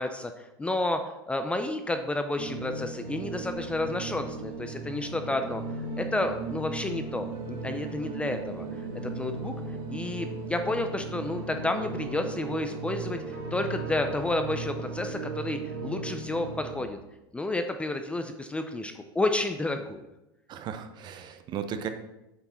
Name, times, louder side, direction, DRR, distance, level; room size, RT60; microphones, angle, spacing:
voice 1, 0.0-5.6 6.0-8.7 9.0-9.5 9.9-17.0 17.3-20.0, left 2 dB, 10° left, 7 dB, 0.5 m, -31 dB
sound 1, 2.4-16.8, right 3 dB, 60° right, 2.7 m, -36 dB
voice 2, 20.5-21.9, right 8 dB, 35° right, 8 dB, 0.8 m, -36 dB
8.0 x 5.8 x 4.3 m, 0.93 s
supercardioid pair, 125°, 12 cm